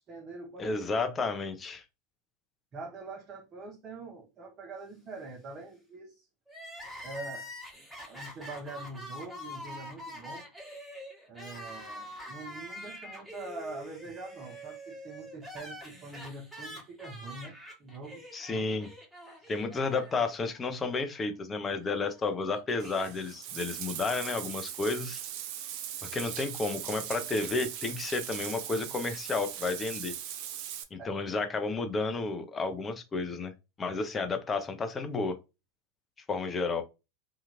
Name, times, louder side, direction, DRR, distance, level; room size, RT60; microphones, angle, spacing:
voice 1, 0.1-0.7 2.7-6.3 7.0-7.5 8.0-10.5 11.3-18.3 19.4-19.6 31.0-31.2, right 3 dB, 35° right, 0.8 m, -44 dB
voice 2, 0.6-1.8 18.3-18.9 19.5-25.2 26.1-30.2 30.9-33.5 33.8-35.4 36.3-36.8, left 3 dB, 25° left, 0.6 m, -32 dB
Crying sobbing, 6.5-20.6 20.9-21.0 22.0-23.1, equal, 5° right, 1.3 m, -45 dB
Bathtub (filling or washing), 22.8-30.8, right 10 dB, 55° right, 0.4 m, -39 dB
2.8 x 2.3 x 2.9 m
hypercardioid pair, 85°, 0 cm